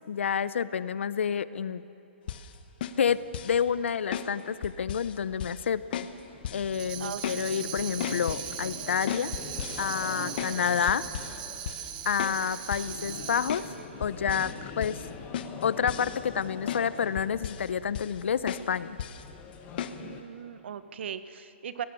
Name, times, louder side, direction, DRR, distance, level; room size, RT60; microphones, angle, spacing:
voice 1, 0.1-1.8 3.0-6.1 6.5-9.3 9.8-11.1 12.0-13.6 14.0-15.0 15.6-19.0, left 7 dB, 75° left, 16 dB, 0.7 m, -29 dB
sound 1, 2.3-2.5 2.8-3.6 4.1-4.3 4.6-5.1 5.4-5.7 5.9-6.2 6.4-6.7 7.0-7.4 7.8-8.5 9.1-10.6 10.9-11.4 11.7-11.9 12.2-12.4 12.7-13.0 13.5-13.7 14.0-14.5 14.8-15.1 15.3-16.4 16.7-16.8 17.2-17.7 17.9-18.2 18.5-18.7 19.0-19.2 19.8-20.0, left 9 dB, 50° left, 1.2 m, -36 dB
sound 2, 6.1-20.2, left 7 dB, 25° left, 1.7 m, -45 dB
Tambourine, 6.7-13.8, right 10 dB, 40° right, 1.5 m, -39 dB
voice 2, 7.0-7.7 10.1-10.4 19.9-21.8, right 8 dB, 65° right, 12 dB, 1.1 m, -39 dB
27.5 x 18.5 x 7.0 m, 2.8 s
hypercardioid pair, 145°, 7 cm